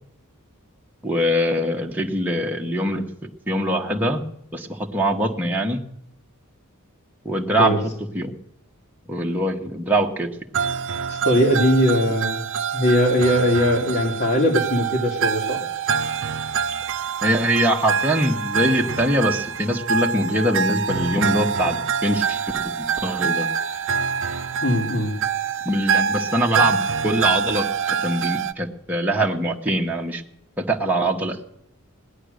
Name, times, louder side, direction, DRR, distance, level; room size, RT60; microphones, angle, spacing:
voice 1, 1.0-3.1 3.5-4.2 4.5-5.8 7.2-8.3 9.1-10.3 17.2-22.7 23.0-23.5 25.6-30.2 30.6-31.4, right 1 dB, 10° right, -1 dB, 1.3 m, -23 dB
sound 1, 10.5-28.5, right 6 dB, 60° right, 0.6 m, -25 dB
voice 2, 11.1-12.4 12.7-15.6 24.6-25.1, equal, 55° left, -1 dB, 2.5 m, -20 dB
18.0 x 11.0 x 6.6 m, 0.76 s
head